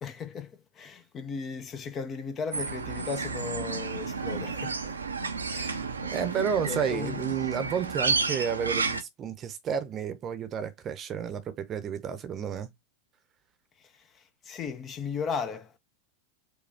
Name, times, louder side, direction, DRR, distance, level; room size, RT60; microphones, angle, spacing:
voice 1, 0.0-5.0 5.5-5.9 6.6-7.2 13.8-15.8, left 5 dB, 25° left, 0.6 m, -36 dB
sound 1, 2.5-9.0, right 4 dB, 75° right, 0.6 m, -31 dB
voice 2, 6.0-12.7, right 7 dB, 30° right, 0.8 m, -31 dB
5.0 x 2.3 x 3.5 m
figure-of-eight pair, 90°, 0 cm